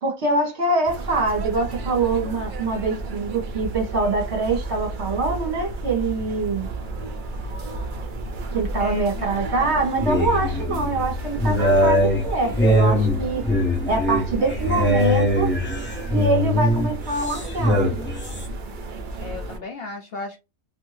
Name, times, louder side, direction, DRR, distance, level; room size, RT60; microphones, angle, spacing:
voice 1, 0.0-6.7 8.5-13.4 13.9-15.5 16.1-17.9, right 3 dB, 50° right, 1.3 m, -24 dB
sound 1, 0.8-19.6, right 2 dB, 75° right, 0.4 m, -32 dB
voice 2, 8.8-9.3 14.4-14.9 19.2-20.4, left 2 dB, 70° left, 0.5 m, -35 dB
sound 2, 9.6-18.5, left 1 dB, 15° left, 0.3 m, -22 dB
2.7 x 2.6 x 3.1 m
omnidirectional pair, 1.6 m